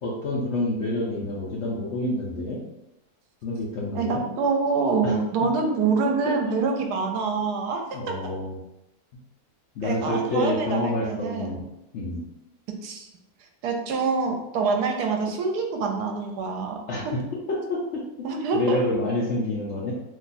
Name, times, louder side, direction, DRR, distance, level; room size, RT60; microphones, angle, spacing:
voice 1, 0.0-2.6 3.4-4.3 5.0-5.1 5.4-5.5 6.0-6.6 7.9-8.6 9.8-11.6 11.9-12.2 16.9-17.2 17.5-18.3 18.5-19.9, left 1 dB, 65° left, -4 dB, 0.7 m, -28 dB
voice 2, 3.9-8.1 9.8-11.5 12.8-13.1 13.6-16.8 18.2-18.8, right 4 dB, 80° right, 3 dB, 1.1 m, -26 dB
2.9 x 2.3 x 4.0 m, 0.90 s
omnidirectional pair, 1.7 m